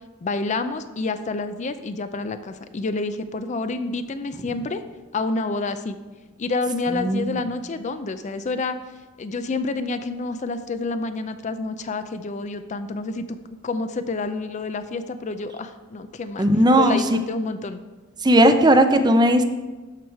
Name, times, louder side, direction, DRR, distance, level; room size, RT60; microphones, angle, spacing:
voice 1, 0.2-4.8 5.1-6.0 6.4-8.8 9.2-13.4 13.6-16.5 16.8-17.8, left 3 dB, 35° left, 10 dB, 0.4 m, -28 dB
voice 2, 6.9-7.4 16.4-17.0 18.2-19.4, right 1 dB, 20° right, 8 dB, 0.5 m, -17 dB
12.5 x 4.8 x 4.6 m, 1.2 s
head